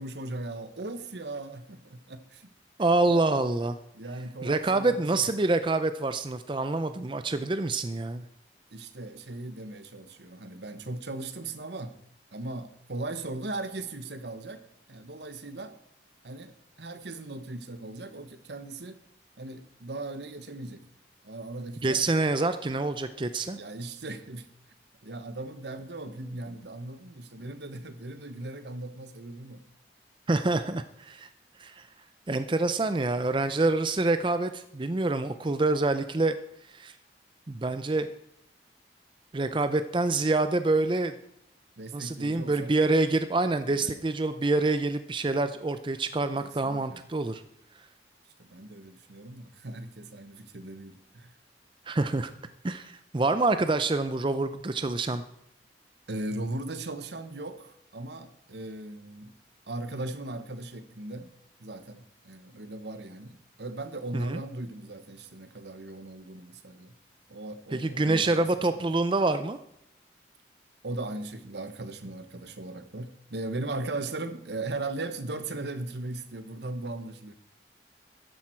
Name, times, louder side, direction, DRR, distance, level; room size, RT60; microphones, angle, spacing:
voice 1, 0.0-2.5 3.1-3.5 3.9-5.1 8.7-12.0 12.3-14.6 14.9-15.8 16.2-16.5 16.8-19.0 19.4-20.9 21.2-22.0 23.6-24.5 25.0-29.6 41.8-42.7 43.7-44.1 46.4-47.0 48.4-51.3 56.1-59.3 59.7-61.3 61.6-66.9 67.3-68.5 68.7-68.9 70.8-77.3, right 2 dB, 70° right, 10 dB, 1.1 m, -38 dB
voice 2, 2.8-3.8 4.4-8.3 21.8-23.6 30.3-31.3 31.6-31.9 32.3-36.4 36.7-36.9 37.5-38.1 39.3-41.1 41.9-47.4 51.9-52.3 52.6-55.2 64.1-64.4 67.7-69.6, right 2 dB, 25° right, 10 dB, 0.5 m, -26 dB
13.5 x 10.5 x 4.5 m, 0.75 s
head